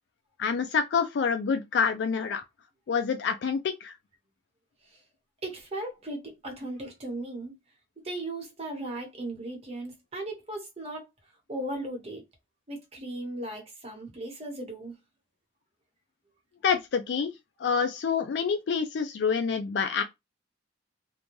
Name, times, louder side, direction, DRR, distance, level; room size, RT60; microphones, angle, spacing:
voice 1, 0.4-2.4 2.9-3.9 16.6-17.3 17.6-20.0, left 6 dB, 65° left, 0.3 m, -27 dB
voice 2, 5.4-7.5 8.0-11.1 11.5-12.2 12.7-15.0, right 1 dB, 35° right, 1.0 m, -37 dB
2.6 x 2.2 x 3.0 m
head